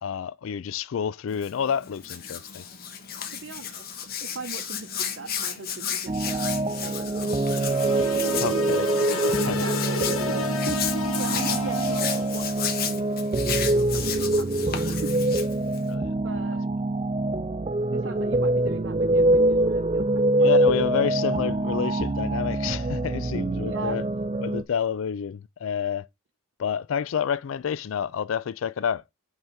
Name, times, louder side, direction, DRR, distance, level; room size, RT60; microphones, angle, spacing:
voice 1, 0.0-2.6 8.2-9.7 15.9-16.1 20.4-24.0 24.4-26.1 26.6-29.0, left 7 dB, 70° left, 0.4 m, -29 dB
Hands, 1.3-15.9, left 8 dB, 45° left, 1.1 m, -34 dB
voice 2, 3.3-3.8 4.2-6.5 6.8-8.5 8.9-15.1 16.2-16.7 17.9-20.5 23.6-24.0, right 3 dB, 60° right, 0.8 m, -40 dB
sound 1, 6.1-24.6, right 2 dB, 25° right, 0.4 m, -25 dB
sound 2, 7.6-12.4, left 4 dB, 90° left, 1.0 m, -32 dB
8.0 x 3.7 x 4.4 m
head